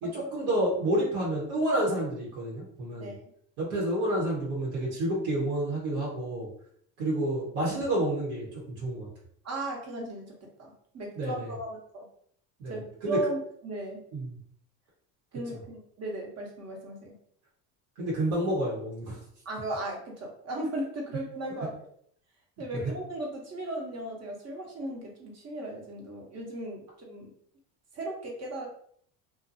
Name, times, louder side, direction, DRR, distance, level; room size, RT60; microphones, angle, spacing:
voice 1, 0.0-3.1 3.6-6.5 7.0-9.1 11.1-11.5 12.6-13.2 14.1-14.4 18.0-19.2 22.7-22.8, right 1 dB, 85° right, -5 dB, 1.1 m, -29 dB
voice 2, 9.4-12.1 12.7-14.0 15.3-17.1 19.4-21.9 22.6-27.3 27.9-28.7, right 1 dB, 35° right, -1 dB, 1.0 m, -36 dB
2.6 x 2.2 x 2.6 m, 0.64 s
supercardioid pair, 85°, 42 cm